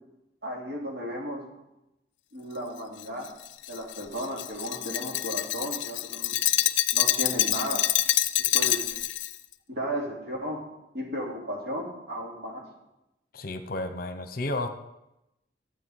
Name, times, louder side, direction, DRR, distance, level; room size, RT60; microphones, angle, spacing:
voice 1, 0.4-1.5 2.3-3.3 3.7-6.4 6.9-7.8 8.5-8.9 9.7-10.6 10.9-12.7, equal, 60° right, -1 dB, 2.7 m, -34 dB
Glass, 3.0-9.4, left 14 dB, 75° left, 0.5 m, -26 dB
voice 2, 13.3-14.7, left 2 dB, 50° left, 9 dB, 0.9 m, -32 dB
13.0 x 7.9 x 4.8 m, 0.90 s
head